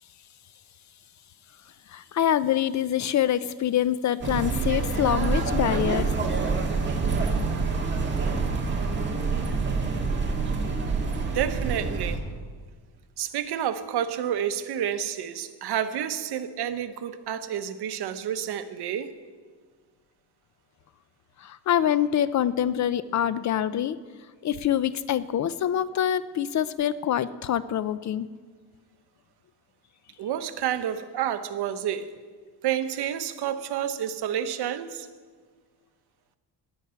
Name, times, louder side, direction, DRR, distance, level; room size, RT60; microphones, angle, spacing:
voice 1, 1.9-6.1 21.4-24.0 24.4-28.3, left 10 dB, 45° left, 15 dB, 0.4 m, -25 dB
sound 1, 4.2-12.2, right 4 dB, 25° right, 1.8 m, -26 dB
voice 2, 11.3-12.2 13.2-19.1 30.2-32.1 32.6-35.1, right 9 dB, 65° right, 10 dB, 1.0 m, -29 dB
19.0 x 9.6 x 5.7 m, 1.5 s
cardioid pair, 165°, 42 cm